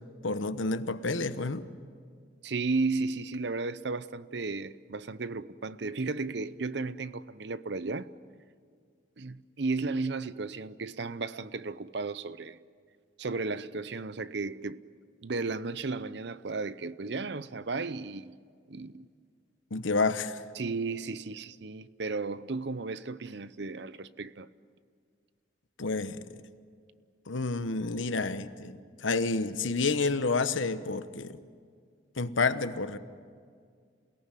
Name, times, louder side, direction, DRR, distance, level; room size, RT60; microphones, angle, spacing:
voice 1, 0.2-1.7 19.7-20.4 25.8-26.4 27.3-31.4 32.2-33.0, left 3 dB, 85° left, 1.1 m, -29 dB
voice 2, 2.4-8.1 9.2-12.6 13.2-14.8 15.2-18.4 18.7-19.1 20.6-24.5, right 3 dB, 60° right, 0.7 m, -34 dB
28.0 x 18.0 x 9.2 m
head